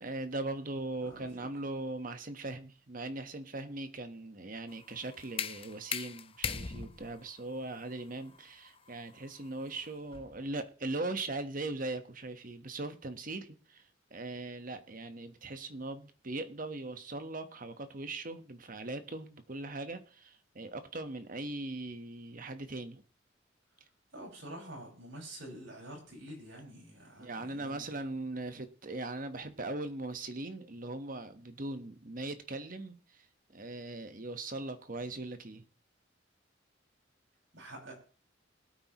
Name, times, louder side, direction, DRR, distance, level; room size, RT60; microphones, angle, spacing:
voice 1, 0.0-13.8 14.1-23.0 27.2-33.2 33.5-35.6, right 2 dB, 45° right, 9 dB, 1.3 m, -40 dB
voice 2, 1.0-1.5 24.1-28.0 37.5-37.9, right 1 dB, 80° right, -1 dB, 5.7 m, -47 dB
sound 1, 4.7-10.5, left 6 dB, 30° left, 0.7 m, -41 dB
22.0 x 8.7 x 3.0 m, 0.39 s
head